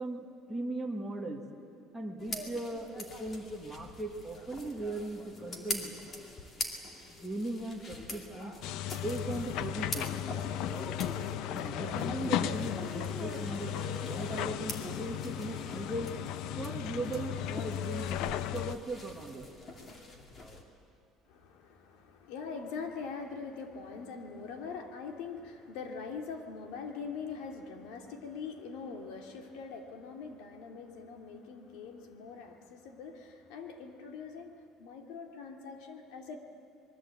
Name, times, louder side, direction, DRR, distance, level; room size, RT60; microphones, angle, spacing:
voice 1, 0.0-1.4 1.9-6.0 7.1-8.5 9.0-10.1 11.5-13.8 14.0-16.2 16.6-19.5, right 2 dB, 5° right, -2 dB, 1.8 m, -38 dB
sound 1, 2.2-20.6, left 2 dB, 25° left, 2.7 m, -44 dB
sound 2, 8.6-18.8, left 11 dB, 65° left, 0.7 m, -35 dB
voice 2, 21.3-36.4, left 5 dB, 80° left, 4 dB, 2.8 m, -43 dB
26.0 x 21.0 x 8.6 m, 2.6 s
cardioid pair, 170°, 0 cm